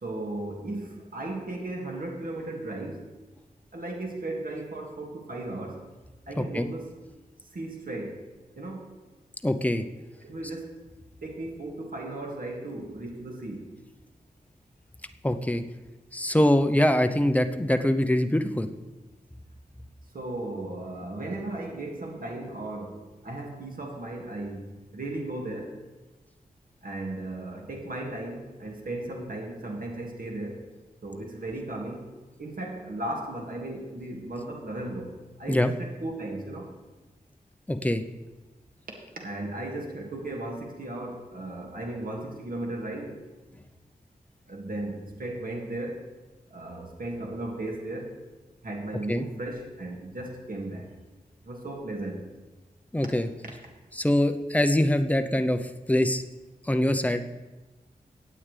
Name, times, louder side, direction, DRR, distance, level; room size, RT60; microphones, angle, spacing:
voice 1, 0.0-3.1 3.7-5.9 6.3-6.9 7.5-8.3 8.6-9.0 10.2-10.7 11.2-13.7 20.1-25.8 26.8-30.7 31.0-32.1 32.4-36.7 39.2-43.2 44.5-46.0 46.5-48.2 48.6-50.9 51.4-52.3, right 2 dB, 65° right, 0 dB, 2.1 m, -36 dB
voice 2, 9.4-9.8 15.2-15.6 16.1-18.7 35.5-35.7 37.7-38.0 49.1-49.2 52.9-53.3 54.0-55.6 55.9-56.2 56.7-57.2, left 1 dB, 10° left, 7 dB, 0.7 m, -23 dB
16.5 x 8.8 x 3.3 m, 1.2 s
wide cardioid pair, 75°, 16 cm